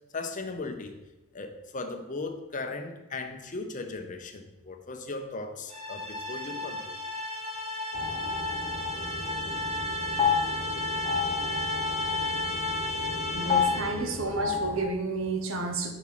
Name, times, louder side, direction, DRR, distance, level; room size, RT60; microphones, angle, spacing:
voice 1, 0.1-1.0 1.3-7.0, left 3 dB, 35° left, 5 dB, 0.7 m, -37 dB
sound 1, 5.7-14.1, left 2 dB, 30° right, 1.8 m, -33 dB
sound 2, 7.9-14.8, left 5 dB, 15° left, 1.2 m, -31 dB
voice 2, 13.3-15.9, right 3 dB, 65° right, 5 dB, 1.0 m, -31 dB
6.9 x 5.5 x 4.6 m, 1.0 s
head